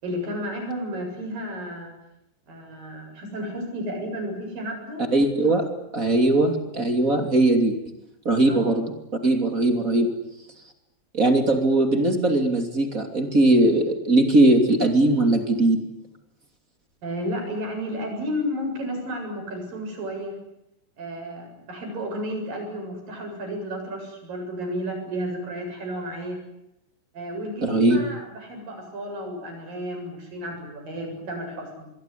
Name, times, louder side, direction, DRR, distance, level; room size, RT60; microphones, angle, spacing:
voice 1, 0.0-1.9 2.5-5.0 8.5-8.7 17.0-20.4 21.0-26.4 27.1-31.9, equal, 45° right, 2 dB, 9.0 m, -32 dB
voice 2, 5.1-5.7 5.9-7.8 8.2-8.9 9.2-10.1 11.1-15.8 27.6-28.0, right 2 dB, 25° right, 5 dB, 2.4 m, -20 dB
26.5 x 22.0 x 10.0 m, 0.84 s
omnidirectional pair, 5.5 m